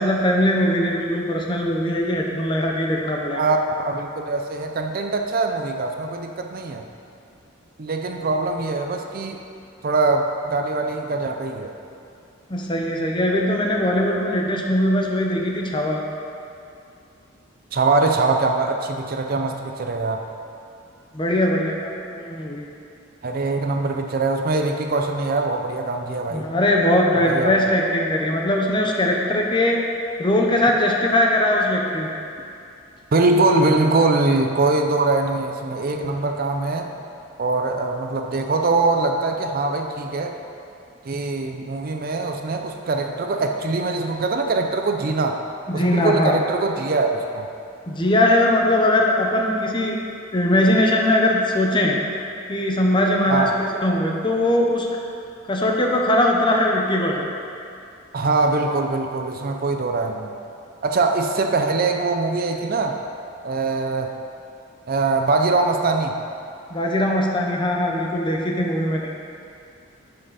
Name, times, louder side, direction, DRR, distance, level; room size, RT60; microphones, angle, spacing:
voice 1, 0.0-3.5 12.5-16.0 21.1-22.7 26.3-29.8 30.2-32.2 36.0-36.1 45.7-46.4 47.9-50.0 50.3-52.0 52.5-54.9 55.5-57.3 66.7-69.1, left 1 dB, 25° left, 0 dB, 0.8 m, -20 dB
voice 2, 3.3-6.8 7.8-9.4 9.8-11.7 17.7-20.2 23.2-26.5 27.2-27.6 33.1-36.9 37.4-40.3 41.0-45.4 45.7-47.5 53.3-53.6 58.1-60.3 60.8-63.0 63.4-64.1 64.9-66.2, right 3 dB, 45° right, 4 dB, 0.5 m, -22 dB
10.5 x 5.8 x 4.1 m, 2.5 s
head